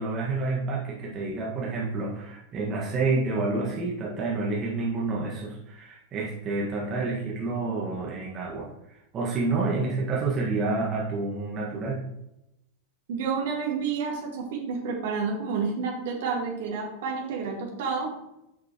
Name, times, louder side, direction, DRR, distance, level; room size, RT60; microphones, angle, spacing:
voice 1, 0.0-12.0, right 3 dB, 30° right, -4 dB, 1.8 m, -29 dB
voice 2, 13.1-18.1, right 5 dB, 55° right, 0 dB, 2.1 m, -30 dB
9.7 x 5.9 x 3.1 m, 0.87 s
figure-of-eight pair, 90°, 0 cm